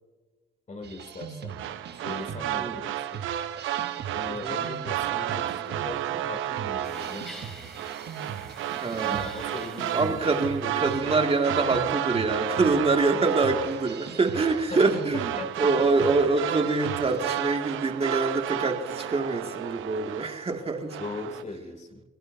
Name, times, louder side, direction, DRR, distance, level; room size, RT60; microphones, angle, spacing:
voice 1, 0.7-1.6 2.0-3.3 4.1-7.7 9.0-10.2 10.6-11.3 13.2-13.3 14.7-15.0 15.4-15.5 21.0-22.0, left 3 dB, 35° left, 4 dB, 2.7 m, -39 dB
sound 1, 0.8-17.4, right 8 dB, 55° right, 1.1 m, -41 dB
sound 2, 1.5-20.6 20.9-21.4, right 11 dB, 80° right, 0.7 m, -32 dB
voice 2, 4.3-4.6 8.8-9.3 9.9-21.0, right 3 dB, 30° right, 4 dB, 2.1 m, -25 dB
sound 3, 6.8-11.2, equal, 5° left, 3.0 m, -48 dB
21.5 x 18.0 x 2.7 m, 1.3 s
cardioid pair, 90°, 20 cm